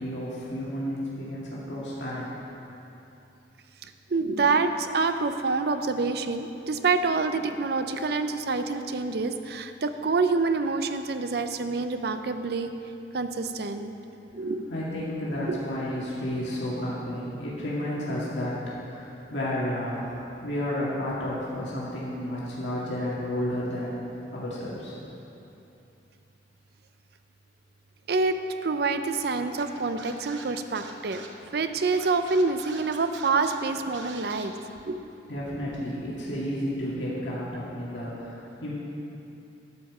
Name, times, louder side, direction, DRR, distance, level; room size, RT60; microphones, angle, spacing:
voice 1, 0.0-2.3 14.7-18.5 18.8-24.0 24.3-25.0 35.3-38.7, equal, 80° left, -7 dB, 2.0 m, -32 dB
voice 2, 3.8-12.7 13.1-13.9 14.3-14.7 15.5-15.6 28.1-31.2 31.5-34.5 34.9-35.0, right 3 dB, 60° right, 9 dB, 0.5 m, -27 dB
Scratching (performance technique), 29.6-34.4, right 4 dB, 85° right, 0.9 m, -44 dB
12.0 x 5.2 x 7.2 m, 2.9 s
head